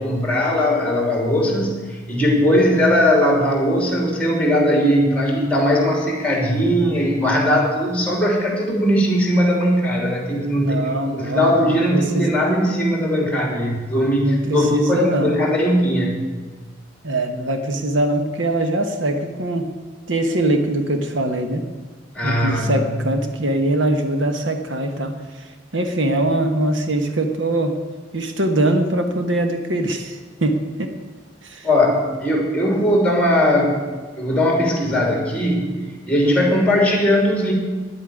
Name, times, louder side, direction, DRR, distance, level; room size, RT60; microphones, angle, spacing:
voice 1, 0.0-16.2 22.1-22.8 31.6-33.8 34.2-35.7 36.1-37.5, equal, 5° left, 0 dB, 2.9 m, -19 dB
voice 2, 10.6-12.3 14.2-15.3 17.0-19.7 20.1-21.7 22.2-25.2 25.7-27.8 28.1-30.9 31.4-31.7, right 1 dB, 70° right, 6 dB, 1.2 m, -22 dB
10.5 x 8.6 x 9.3 m, 1.4 s
head